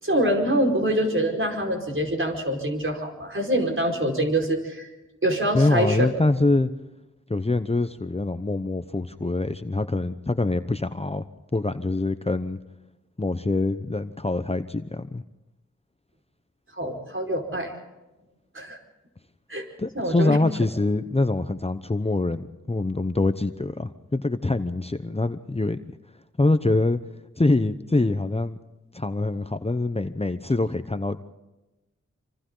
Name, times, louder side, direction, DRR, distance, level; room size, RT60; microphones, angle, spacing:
voice 1, 0.0-4.9 5.2-6.1 16.8-17.7 18.5-18.8 19.5-19.6 19.9-20.4, right 1 dB, 45° right, 2 dB, 5.1 m, -25 dB
voice 2, 5.5-6.7 7.3-11.2 11.5-12.6 13.2-15.2 19.8-25.8 26.4-27.0 27.4-28.6 28.9-31.2, left 2 dB, 20° left, 10 dB, 0.8 m, -24 dB
27.0 x 25.5 x 3.9 m, 1.0 s
cardioid pair, 50°, 30 cm